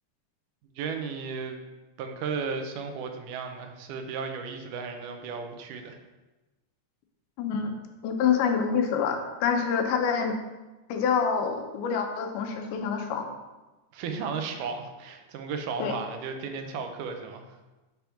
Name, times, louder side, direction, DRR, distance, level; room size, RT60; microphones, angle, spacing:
voice 1, 0.8-1.6 2.0-6.0 13.9-17.5, right 5 dB, 90° right, 5 dB, 2.2 m, -34 dB
voice 2, 7.4-7.7 8.0-10.4 10.9-13.3 15.8-16.0, left 6 dB, 85° left, 4 dB, 2.2 m, -26 dB
6.0 x 3.5 x 5.6 m, 1.1 s
omnidirectional pair, 3.6 m